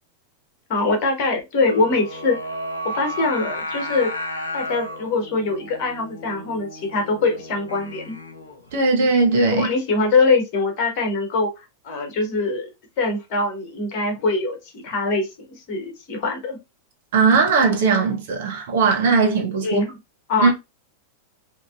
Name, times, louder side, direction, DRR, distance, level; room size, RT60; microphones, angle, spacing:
voice 1, 0.7-2.4 2.8-4.1 4.5-8.2 9.5-12.7 13.0-16.6 19.6-20.0 20.3-20.5, left 3 dB, 45° left, 1.1 m, -23 dB
Singing, 1.6-8.7, left 1 dB, 80° left, 0.7 m, -33 dB
voice 2, 8.7-9.7 17.1-19.8 20.4-20.5, right 4 dB, 55° right, 0.8 m, -18 dB
2.9 x 2.6 x 2.3 m
figure-of-eight pair, 90°, 0 cm